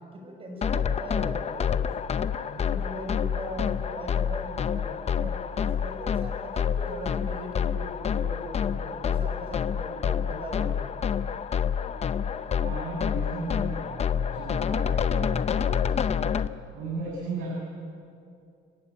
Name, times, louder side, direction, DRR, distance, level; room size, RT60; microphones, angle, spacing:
voice 1, 0.1-1.9 2.4-10.8, equal, 25° right, 1 dB, 6.7 m, -39 dB
sound 1, 0.6-16.5, left 7 dB, 30° left, 0.7 m, -28 dB
sound 2, 11.7-16.0, left 5 dB, 60° left, 3.3 m, -46 dB
voice 2, 12.5-16.2 16.7-17.5, right 3 dB, 85° right, -3 dB, 6.7 m, -36 dB
30.0 x 18.5 x 9.4 m, 2.5 s
cardioid pair, 155°, 20 cm